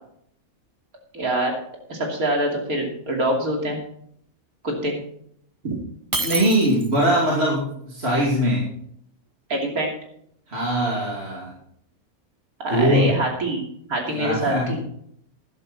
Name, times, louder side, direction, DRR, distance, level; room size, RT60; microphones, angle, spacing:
voice 1, 1.1-1.5 1.9-3.8 4.6-4.9 5.6-5.7 9.5-9.9 12.6-13.6 13.9-14.8, right 1 dB, 75° right, 0 dB, 3.4 m, -24 dB
Shatter, 6.1-7.2, right 3 dB, 25° right, 0.4 m, -28 dB
voice 2, 6.2-8.6 10.5-11.5 12.7-13.1 14.1-14.8, equal, 45° right, -4 dB, 3.0 m, -21 dB
12.5 x 11.0 x 4.3 m, 0.68 s
omnidirectional pair, 1.5 m